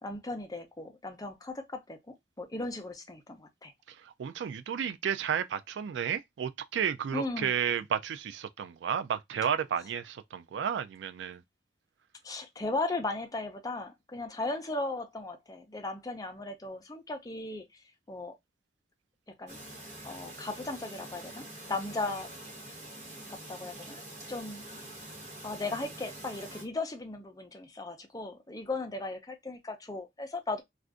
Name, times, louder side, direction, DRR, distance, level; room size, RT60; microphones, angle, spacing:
voice 1, 0.0-3.7 7.1-7.6 12.2-17.8 18.1-18.3 19.4-19.6 20.0-22.3 23.3-24.0 24.3-24.6 25.4-30.6, left 2 dB, 20° left, 0.6 m, -37 dB
voice 2, 3.9-11.4, right 8 dB, 75° right, 0.3 m, -32 dB
Chirp tweet, 19.5-26.6, right 1 dB, 40° right, 1.3 m, -46 dB
2.4 x 2.4 x 3.5 m
head